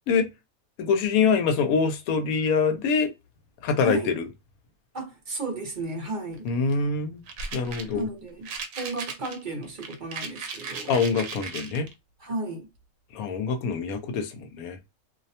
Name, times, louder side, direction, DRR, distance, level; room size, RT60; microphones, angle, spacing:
voice 1, 0.8-3.1 3.6-4.3 6.4-7.2 7.5-8.1 10.9-11.9 13.1-14.8, left 5 dB, 90° left, 1.0 m, -24 dB
voice 2, 3.8-4.1 4.9-6.5 7.9-8.5 8.8-10.9 12.2-12.7, right 3 dB, 45° right, 0.7 m, -33 dB
sound 1, 6.3-6.7 7.3-8.0 8.4-11.9, right 4 dB, 75° right, 0.9 m, -37 dB
2.6 x 2.1 x 2.7 m
omnidirectional pair, 1.5 m